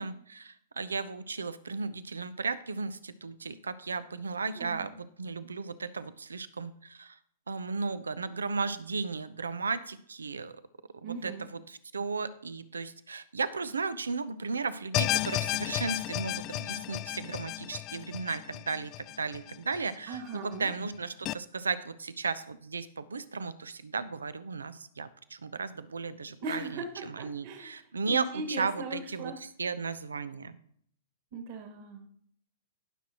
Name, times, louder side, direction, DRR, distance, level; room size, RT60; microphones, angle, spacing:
voice 1, 0.0-7.2 7.5-10.6 11.0-30.6, right 4 dB, 90° right, 15 dB, 0.6 m, -35 dB
voice 2, 4.5-4.9 11.0-11.5 20.1-20.7 26.4-27.8 28.1-29.4 31.3-32.1, right 3 dB, 50° right, 5 dB, 2.0 m, -39 dB
sound 1, 14.9-20.2 20.5-20.6 21.3-21.4, left 15 dB, 35° left, 0.3 m, -33 dB
17.0 x 6.3 x 3.0 m, 0.63 s
hypercardioid pair, 115°, 0 cm